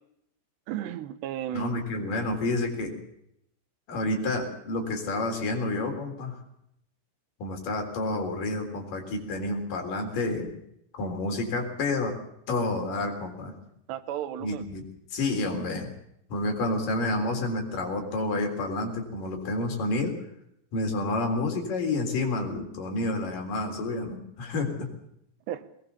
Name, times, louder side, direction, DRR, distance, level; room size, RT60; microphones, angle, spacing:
voice 1, 0.7-1.8 13.9-14.6 25.5-25.6, right 11 dB, 90° right, 12 dB, 3.3 m, -34 dB
voice 2, 1.5-2.9 3.9-6.4 7.4-10.5 11.0-12.2 12.5-13.5 14.4-15.9 16.3-20.1 20.7-24.9, left 2 dB, 55° left, 3 dB, 5.2 m, -29 dB
21.0 x 20.5 x 6.9 m, 0.77 s
omnidirectional pair, 4.8 m